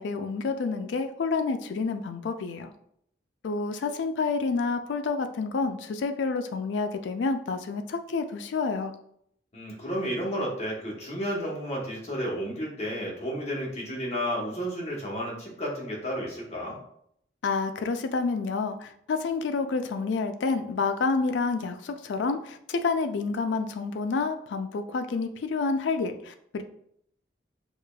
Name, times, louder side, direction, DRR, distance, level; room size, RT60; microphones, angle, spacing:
voice 1, 0.0-2.7 3.4-8.9 17.4-26.6, left 4 dB, 85° left, 8 dB, 0.4 m, -29 dB
voice 2, 9.5-16.8, equal, 35° left, -3 dB, 1.0 m, -32 dB
4.8 x 2.4 x 2.2 m, 0.69 s
head